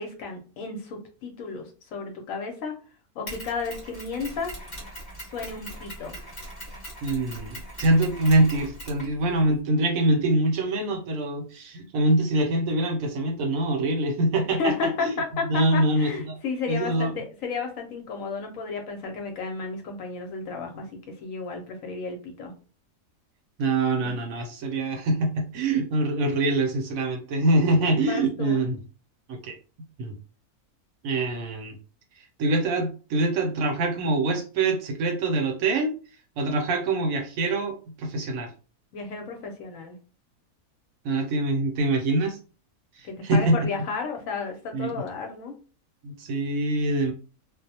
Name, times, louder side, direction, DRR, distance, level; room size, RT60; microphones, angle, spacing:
voice 1, 0.0-2.7 3.2-4.5 5.3-6.1 14.6-20.9 21.2-22.5 24.0-24.1 28.0-28.6 38.9-40.0 43.0-45.5, left 4 dB, 70° left, 3 dB, 0.9 m, -32 dB
Mechanisms, 3.3-9.6, right 1 dB, 35° left, 1.0 m, -40 dB
voice 2, 7.0-14.7 15.0-15.1 15.5-16.4 16.7-17.1 23.6-28.8 29.3-29.6 30.0-30.1 31.0-31.8 32.2-35.9 36.4-38.5 41.0-42.4 43.0-43.6 44.7-45.0 46.0-47.1, right 2 dB, 70° right, 4 dB, 0.9 m, -24 dB
2.5 x 2.1 x 2.7 m, 0.36 s
omnidirectional pair, 1.6 m